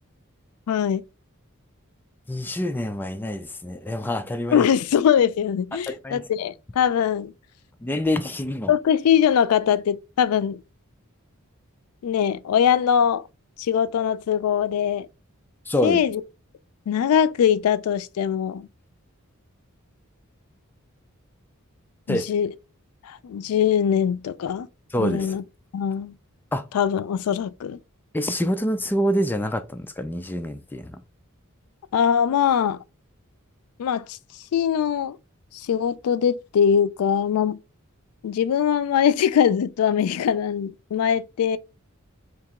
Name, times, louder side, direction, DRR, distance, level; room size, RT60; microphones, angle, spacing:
voice 1, 0.7-1.0 4.5-7.3 8.7-10.6 12.0-13.3 13.6-15.1 15.8-16.2 16.9-18.7 22.1-22.5 23.0-24.7 25.0-25.4 25.7-26.1 26.7-27.8 31.9-32.8 33.8-34.2 34.5-35.2 35.5-37.6 38.2-41.6, left 8 dB, 90° left, 0.3 m, -22 dB
voice 2, 2.3-4.7 5.9-6.2 7.8-8.7 15.7-16.0 22.1-22.3 24.9-25.3 26.5-26.6 28.1-31.0, equal, 10° left, 0.3 m, -26 dB
2.9 x 2.9 x 3.5 m
head